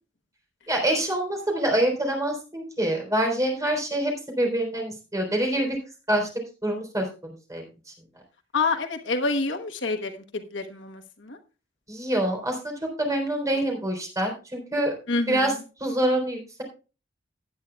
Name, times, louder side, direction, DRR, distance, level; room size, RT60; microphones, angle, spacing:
voice 1, 0.7-5.8 6.1-6.3 6.6-7.1 7.5-7.6 11.9-12.7 13.0-14.9 15.3-15.5 15.8-16.6, right 1 dB, 20° right, 1 dB, 3.7 m, -25 dB
voice 2, 8.5-11.4 15.1-15.5, left 3 dB, 70° left, 6 dB, 1.2 m, -28 dB
17.0 x 9.4 x 2.3 m, 0.32 s
head